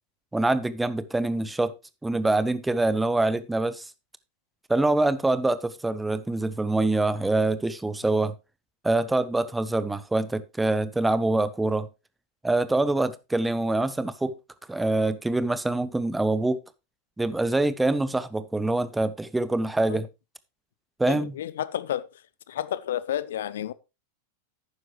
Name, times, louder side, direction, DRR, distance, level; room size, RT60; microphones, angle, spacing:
voice 1, 0.3-1.7 2.0-3.9 4.7-8.3 8.8-11.9 12.4-14.4 14.7-16.6 17.2-20.1 21.0-21.3, right 2 dB, 5° right, 0.8 m, -25 dB
voice 2, 21.1-22.2 22.5-23.7, left 11 dB, 60° left, 0.6 m, -31 dB
11.5 x 9.4 x 3.0 m
figure-of-eight pair, 90°, 0 cm